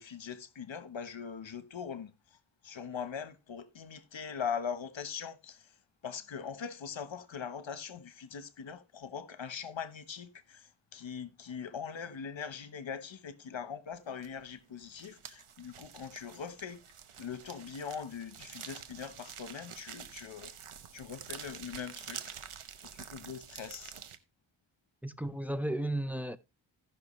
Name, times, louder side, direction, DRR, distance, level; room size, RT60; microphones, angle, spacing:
voice 1, 0.0-2.1 2.6-5.7 6.0-16.8 17.2-20.5 20.9-22.2 22.9-23.9, left 7 dB, 65° left, 1.1 m, -41 dB
sound 1, 14.2-14.5 14.8-24.2, right 8 dB, 85° right, 1.0 m, -48 dB
voice 2, 25.0-26.4, right 1 dB, 5° right, 0.7 m, -34 dB
16.5 x 5.9 x 3.1 m
cardioid pair, 55°, 49 cm